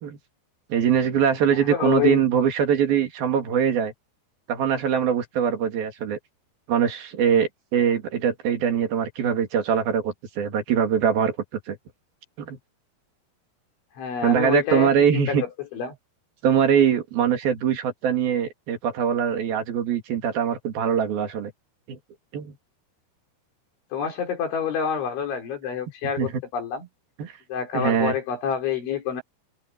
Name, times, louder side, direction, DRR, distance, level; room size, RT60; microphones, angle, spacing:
voice 1, 0.7-3.9 4.5-6.2 6.7-11.8 12.4-12.6 14.2-15.4 16.4-21.5 21.9-22.0 22.3-22.6 26.2-26.4 27.2-27.3 27.7-28.2, right 8 dB, 55° right, 4.1 m, -22 dB
voice 2, 1.7-2.2 14.0-16.0 23.9-26.9 27.5-29.2, left 7 dB, 90° left, 7.2 m, -27 dB
omnidirectional pair, 5.2 m